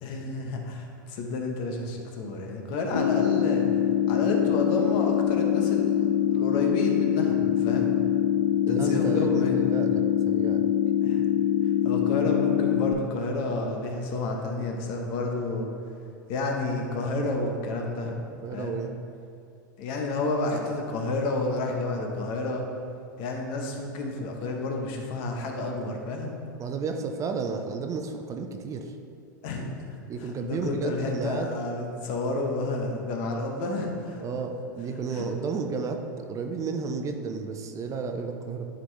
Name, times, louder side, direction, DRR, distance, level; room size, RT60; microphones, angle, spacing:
voice 1, 0.0-3.7 4.1-7.9 8.7-9.7 11.0-11.2 11.8-15.7 16.3-18.2 18.5-18.8 19.8-22.7 23.2-26.4 29.4-30.0 30.4-34.2 35.2-35.3, left 2 dB, 50° left, 2 dB, 1.0 m, -30 dB
sound 1, 2.9-12.9, left 10 dB, 80° left, 0.4 m, -24 dB
voice 2, 8.7-10.7 18.4-18.9 26.6-29.0 30.1-31.5 34.2-38.7, right 5 dB, 30° right, 5 dB, 0.6 m, -32 dB
10.0 x 3.7 x 3.2 m, 2.4 s
hypercardioid pair, 95°, 11 cm